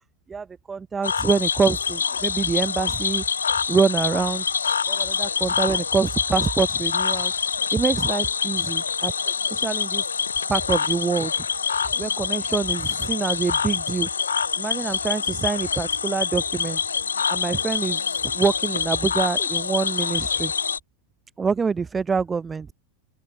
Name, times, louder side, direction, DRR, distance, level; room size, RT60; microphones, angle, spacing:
voice 1, 0.3-3.2 3.7-4.4 4.9-7.3 7.7-9.1 9.5-10.1 10.5-11.5 12.0-14.1 14.6-16.8 17.3-20.5 21.4-22.7, right 5 dB, 15° right, 0.5 m, -25 dB
Cricket / Frog, 1.0-20.8, left 6 dB, 70° left, 2.0 m, -25 dB
sound 1, 7.8-16.7, right 3 dB, 80° right, 4.7 m, -50 dB
open air
figure-of-eight pair, 90°, 0 cm